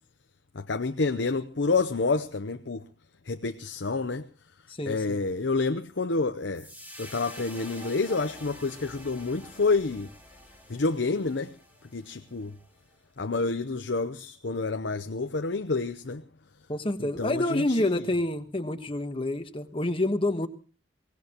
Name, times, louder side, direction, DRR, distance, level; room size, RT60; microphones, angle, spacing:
voice 1, 0.5-2.8 3.3-4.3 4.9-6.7 7.0-10.1 10.7-11.5 11.9-12.5 13.2-16.2 17.0-17.9, left 3 dB, 70° left, 0.8 m, -28 dB
voice 2, 4.7-5.2 16.7-20.5, left 1 dB, 30° left, 1.3 m, -28 dB
sound 1, 6.5-12.9, equal, 10° right, 3.7 m, -47 dB
24.0 x 18.0 x 3.0 m
head